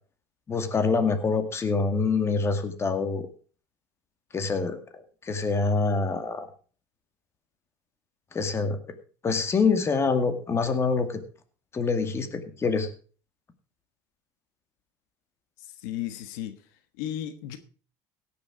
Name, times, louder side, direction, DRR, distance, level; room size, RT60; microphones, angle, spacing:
voice 1, 0.5-3.2 4.3-4.8 5.2-6.5 8.3-8.8 9.2-11.2 11.7-12.9, left 4 dB, 30° left, 2.1 m, -25 dB
voice 2, 15.8-16.5 17.0-17.6, left 11 dB, 85° left, 1.3 m, -34 dB
17.0 x 7.0 x 4.9 m
supercardioid pair, 110°, 9 cm